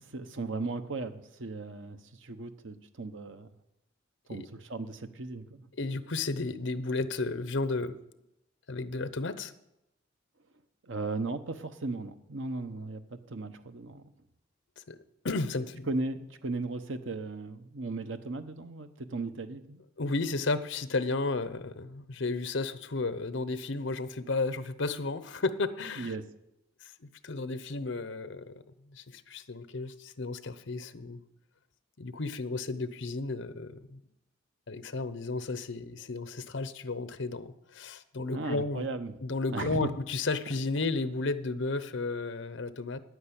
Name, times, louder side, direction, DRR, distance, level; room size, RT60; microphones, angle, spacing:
voice 1, 0.0-3.5 4.3-5.7 10.8-14.0 15.9-19.8 26.0-26.3 38.3-39.2 39.5-39.9, right 3 dB, 75° right, 9 dB, 1.0 m, -36 dB
voice 2, 5.8-7.9 8.7-9.5 14.8-15.9 20.0-26.1 26.8-31.2 32.0-34.0 34.7-38.9 39.2-43.0, left 3 dB, 70° left, 13 dB, 0.8 m, -33 dB
10.5 x 9.4 x 8.7 m, 0.87 s
head